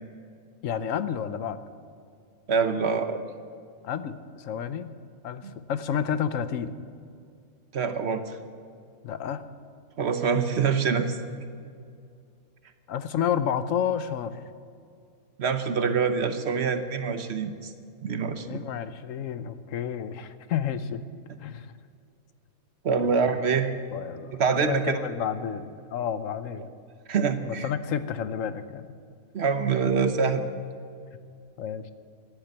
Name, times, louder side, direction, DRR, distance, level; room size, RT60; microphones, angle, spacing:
voice 1, 0.6-1.6 3.8-4.9 5.2-6.8 9.0-9.5 12.9-14.4 18.5-21.0 21.4-21.8 23.0-23.4 23.9-26.7 27.4-28.9 29.8-29.9 31.6-31.9, left 8 dB, 70° left, 12 dB, 1.1 m, -30 dB
voice 2, 2.5-3.2 5.4-5.5 7.7-8.4 10.0-11.2 15.4-17.7 18.0-18.6 22.8-23.7 24.4-25.0 27.1-27.7 29.3-30.4, right 5 dB, 55° right, 8 dB, 1.1 m, -25 dB
14.5 x 10.5 x 8.1 m, 2.3 s
omnidirectional pair, 1.4 m